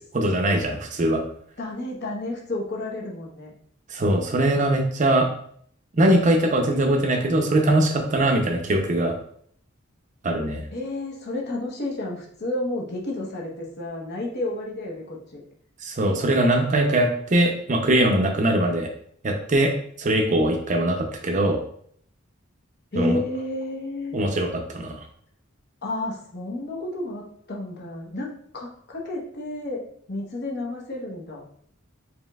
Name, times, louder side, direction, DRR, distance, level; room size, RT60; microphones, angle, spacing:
voice 1, 0.1-1.2 3.9-5.3 6.0-9.1 10.2-10.6 15.8-18.9 19.2-19.7 20.0-21.6 23.0-23.2 24.1-25.0, right 1 dB, 40° right, 3 dB, 0.6 m, -21 dB
voice 2, 1.6-3.5 10.7-15.4 22.9-24.2 25.8-31.4, left 2 dB, 55° left, -2 dB, 1.0 m, -31 dB
5.1 x 3.1 x 2.4 m, 0.63 s
head